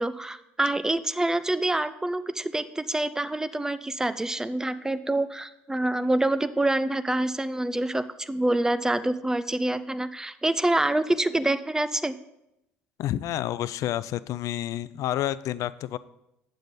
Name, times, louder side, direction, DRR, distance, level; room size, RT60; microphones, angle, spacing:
voice 1, 0.0-12.1, right 1 dB, 10° right, 13 dB, 0.5 m, -26 dB
voice 2, 13.0-16.0, left 13 dB, 50° left, 17 dB, 0.4 m, -29 dB
9.0 x 7.2 x 3.9 m, 0.85 s
hypercardioid pair, 60°, 7 cm